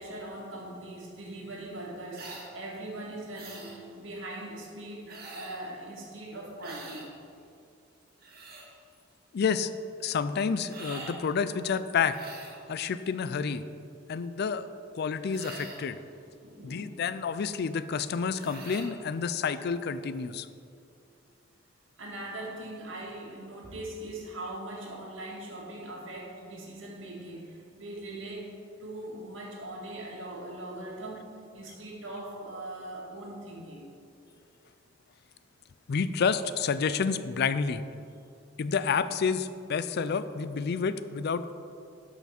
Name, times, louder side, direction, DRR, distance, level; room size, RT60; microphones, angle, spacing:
voice 1, 0.0-7.1 16.4-17.0 22.0-28.5 28.8-33.9, right 1 dB, 75° right, -2 dB, 1.9 m, -41 dB
sound 1, 2.1-2.5 3.3-3.8 5.1-5.7 6.6-7.1 8.0-8.7 10.7-11.2 12.1-12.6 15.3-15.9 18.4-18.9, right 3 dB, 50° right, 1.6 m, -44 dB
voice 2, 9.3-9.7 10.0-12.2 12.7-13.6 14.1-14.7 14.9-16.0 16.6-20.5 35.9-37.8 38.6-41.5, left 5 dB, 55° left, 13 dB, 0.4 m, -29 dB
12.0 x 5.7 x 4.3 m, 2.5 s
head